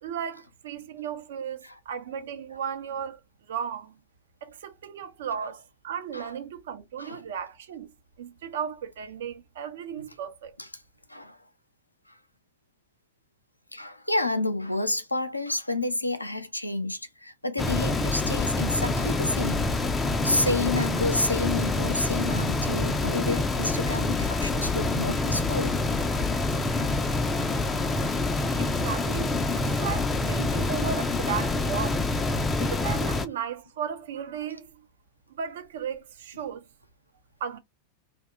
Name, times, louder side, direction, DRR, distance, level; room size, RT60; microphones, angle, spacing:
voice 1, 0.0-3.2 3.5-4.0 4.4-7.9 8.2-10.6 28.6-32.1 32.6-34.7 35.3-36.6 37.4-37.6, right 8 dB, 60° right, 0.6 m, -35 dB
voice 2, 13.7-19.7 20.2-25.7, left 2 dB, 85° left, 0.5 m, -29 dB
sound 1, 17.6-33.3, left 2 dB, 15° left, 0.4 m, -26 dB
2.7 x 2.2 x 3.5 m
figure-of-eight pair, 90°, 0 cm